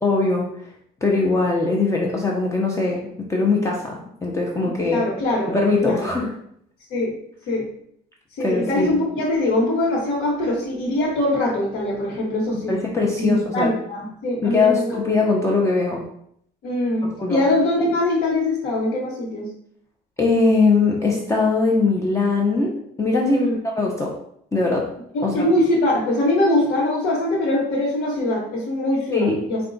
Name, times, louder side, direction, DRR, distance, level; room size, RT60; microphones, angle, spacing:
voice 1, 0.0-0.5 1.0-5.0 5.5-6.3 8.4-8.9 12.7-13.7 14.4-16.1 17.2-17.4 20.2-24.2 24.5-24.9 25.2-25.5 29.1-29.4, left 3 dB, 15° left, -2 dB, 0.7 m, -21 dB
voice 2, 4.6-5.5 5.8-6.1 6.9-7.1 7.5-7.7 8.4-12.8 13.2-14.9 16.6-19.5 23.2-23.6 25.1-29.6, left 1 dB, 80° left, -5 dB, 1.1 m, -22 dB
4.6 x 2.3 x 3.9 m, 0.68 s
cardioid pair, 110°, 17 cm